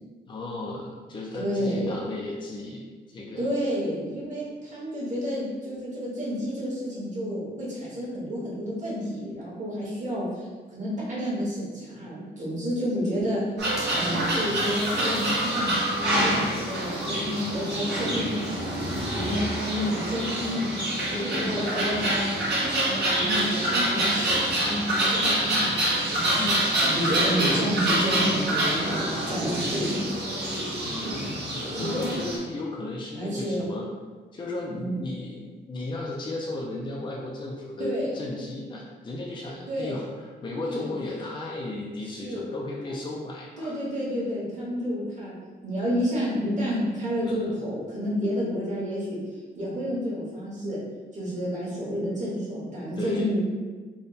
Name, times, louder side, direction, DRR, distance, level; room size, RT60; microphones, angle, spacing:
voice 1, 0.2-3.5 17.2-17.6 21.1-21.4 26.3-27.3 30.8-33.9 34.3-43.8 47.2-47.5 53.0-53.4, left 2 dB, 25° left, -3 dB, 0.4 m, -35 dB
voice 2, 1.3-2.0 3.4-13.4 13.9-17.2 17.5-18.7 19.1-20.8 21.3-22.2 23.1-25.7 26.1-26.4 26.8-30.0 31.7-32.0 33.1-33.7 34.8-35.0 37.8-38.1 39.7-40.0 40.6-40.9 42.0-42.5 43.6-45.3 45.6-49.2 49.5-50.8 51.1-53.4, equal, 40° right, -7 dB, 1.4 m, -30 dB
sound 1, 13.6-32.4, right 1 dB, 65° right, 1.3 m, -26 dB
3.5 x 2.1 x 4.0 m, 1.4 s
wide cardioid pair, 125°, 19 cm